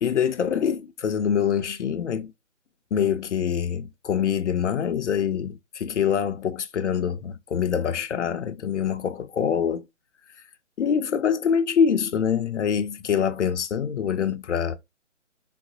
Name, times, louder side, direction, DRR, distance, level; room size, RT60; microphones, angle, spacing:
voice 1, 0.0-2.3 2.9-9.8 10.8-14.8, left 7 dB, 70° left, 0.6 m, -25 dB
3.9 x 2.0 x 2.8 m
hypercardioid pair, 155°, 37 cm